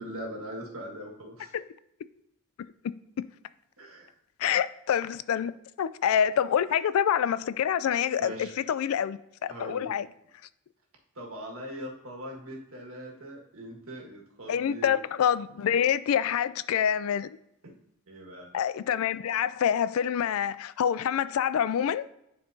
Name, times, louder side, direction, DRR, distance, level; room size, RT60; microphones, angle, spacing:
voice 1, 0.0-1.5 3.8-4.1 8.2-8.5 9.5-9.9 11.1-15.0 17.6-17.7 18.1-18.5, equal, 75° right, 1.6 m, -41 dB
voice 2, 2.8-3.3 4.4-5.5 5.8-10.1 14.5-17.3 18.5-22.1, left 8 dB, 80° left, 0.3 m, -26 dB
10.5 x 4.4 x 2.7 m
head